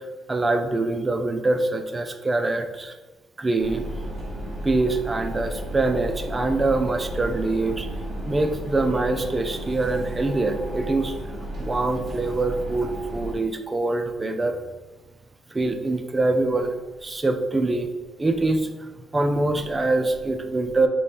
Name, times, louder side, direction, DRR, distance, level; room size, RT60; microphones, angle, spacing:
voice 1, 0.3-2.9 3.4-3.9 4.6-7.9 8.3-11.2 11.6-14.6 15.5-16.7 17.0-17.9 18.2-20.9, right 2 dB, 25° right, 6 dB, 0.5 m, -24 dB
sound 1, 3.6-13.4, right 1 dB, 45° right, 1.4 m, -33 dB
3.1 x 3.1 x 4.3 m, 1.2 s
cardioid pair, 90°, 0 cm